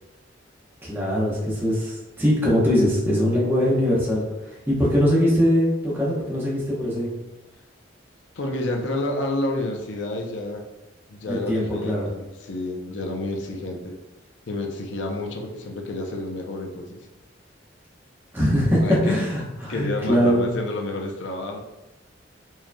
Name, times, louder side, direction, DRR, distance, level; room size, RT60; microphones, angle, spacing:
voice 1, 0.8-4.2 4.7-7.1 11.3-12.1 18.3-20.5, equal, 10° right, -6 dB, 0.9 m, -21 dB
voice 2, 8.3-10.6 11.1-14.0 14.5-17.0 18.8-19.2 19.7-21.6, left 2 dB, 75° left, 2 dB, 0.6 m, -29 dB
4.5 x 3.0 x 2.2 m, 1.0 s
head